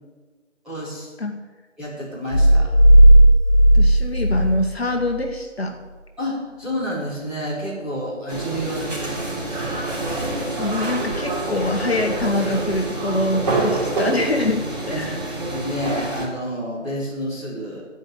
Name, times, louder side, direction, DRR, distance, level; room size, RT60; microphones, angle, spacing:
voice 1, 0.6-1.1 1.8-2.7 6.2-9.8 14.9-17.8, equal, ahead, -14 dB, 1.9 m, -30 dB
sound 1, 2.3-5.3, right 1 dB, 30° left, 3.0 m, -13 dB
voice 2, 3.7-5.8 10.6-15.2, left 2 dB, 55° left, 4 dB, 1.3 m, -24 dB
sound 2, 8.3-16.2, right 2 dB, 35° right, 2.9 m, -26 dB
11.0 x 5.2 x 7.9 m, 1.3 s
figure-of-eight pair, 160°, 38 cm